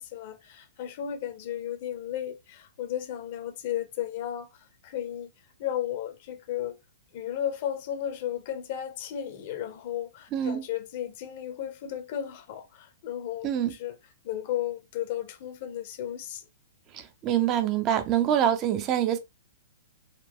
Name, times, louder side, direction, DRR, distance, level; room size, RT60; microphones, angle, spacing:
voice 1, 0.0-4.5 4.8-5.3 5.6-6.8 7.1-13.5 13.8-13.9 14.2-16.4, left 11 dB, 45° left, 0.7 m, -34 dB
voice 2, 10.3-10.7 13.4-13.8 16.9-19.2, right 10 dB, 30° right, 0.6 m, -25 dB
4.0 x 2.3 x 3.6 m
figure-of-eight pair, 110°, 0 cm